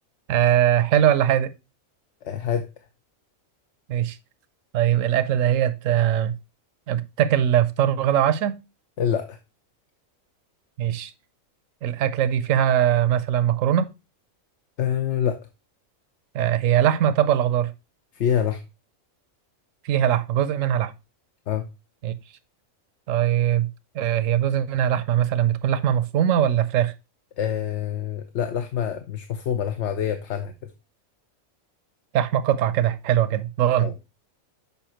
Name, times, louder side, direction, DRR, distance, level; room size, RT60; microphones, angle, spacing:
voice 1, 0.3-1.5 3.9-4.2 4.7-6.3 6.9-8.6 10.8-11.1 11.8-13.9 16.3-17.7 19.8-20.9 22.0-22.1 23.1-23.7 23.9-26.9 32.1-33.9, right 10 dB, 75° right, 1.0 m, -21 dB
voice 2, 2.2-2.7 9.0-9.4 14.8-15.4 18.1-18.6 21.5-21.6 27.4-30.7 33.8-33.9, left 9 dB, 65° left, 0.9 m, -26 dB
7.0 x 5.3 x 2.8 m
omnidirectional pair, 1.4 m